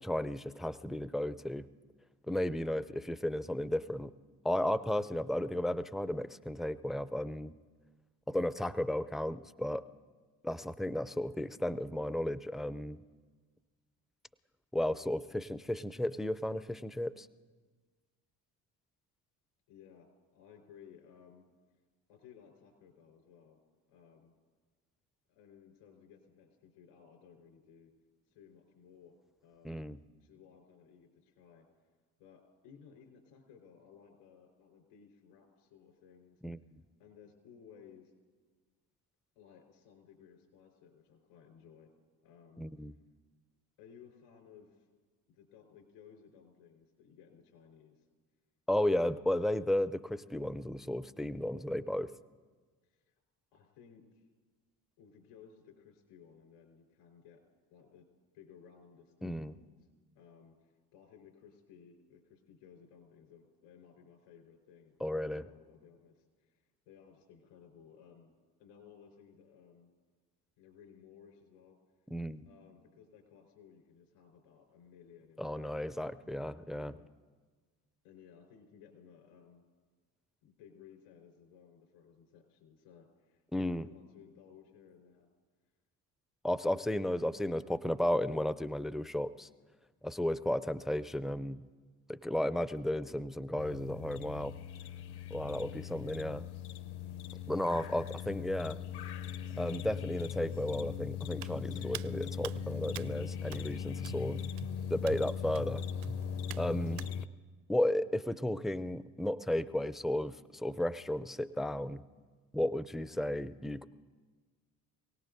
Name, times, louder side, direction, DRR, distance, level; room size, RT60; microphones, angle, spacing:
voice 1, 0.0-1.7 2.3-4.1 4.4-7.5 8.3-9.8 10.4-13.0 14.7-17.3 29.6-30.0 36.4-36.6 42.6-42.9 48.7-52.1 59.2-59.6 65.0-65.5 72.1-72.4 75.4-76.9 83.5-83.9 86.4-89.5 90.0-91.6 92.1-94.6 95.3-96.5 97.5-98.8 99.6-104.4 104.9-105.8 106.6-107.1 107.7-112.0 112.5-113.9, left 1 dB, ahead, 16 dB, 0.4 m, -34 dB
voice 2, 19.7-21.5 22.1-23.6 23.9-24.3 25.3-27.9 28.3-29.1 29.4-29.8 30.2-31.7 32.2-36.4 37.0-38.1 39.3-41.9 42.2-42.9 43.8-44.9 45.3-48.0 52.8-53.2 53.5-54.2 55.0-57.4 57.7-58.1 58.3-59.8 60.1-68.3 68.6-69.9 70.6-71.8 72.5-75.9 76.7-77.1 78.0-79.6 80.4-85.3 95.4-95.8 97.3-97.4, left 7 dB, 75° left, 2 dB, 4.4 m, -58 dB
sound 1, 93.6-107.3, left 8 dB, 60° left, 0.9 m, -40 dB
Hands, 101.4-107.1, right 15 dB, 50° right, 0.5 m, -48 dB
27.5 x 18.0 x 2.6 m, 1.4 s
hypercardioid pair, 60°, 47 cm